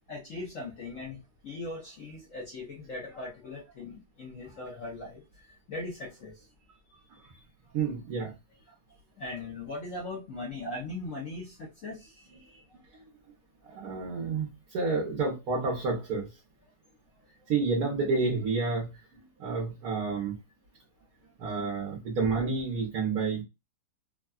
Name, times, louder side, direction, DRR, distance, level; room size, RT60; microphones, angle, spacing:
voice 1, 0.1-1.2 1.4-6.4 7.3-7.4 9.2-12.6 12.9-13.0, left 2 dB, 55° left, 1.0 m, -40 dB
voice 2, 7.7-8.3 12.9-13.0 13.7-16.3 17.5-20.4 21.4-23.4, right 4 dB, 65° right, 1.2 m, -30 dB
3.6 x 2.2 x 2.3 m
omnidirectional pair, 1.9 m